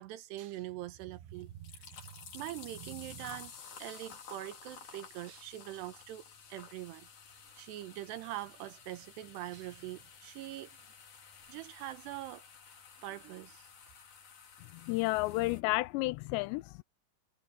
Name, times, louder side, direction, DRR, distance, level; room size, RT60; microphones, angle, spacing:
voice 1, 0.0-6.2 6.5-7.1 7.6-10.7 11.5-12.4 13.0-13.7, right 14 dB, 80° right, 2.9 m, -43 dB
sound 1, 1.3-15.6, left 6 dB, 45° left, 3.9 m, -53 dB
voice 2, 14.8-16.8, left 21 dB, 85° left, 2.7 m, -31 dB
omnidirectional pair, 5.1 m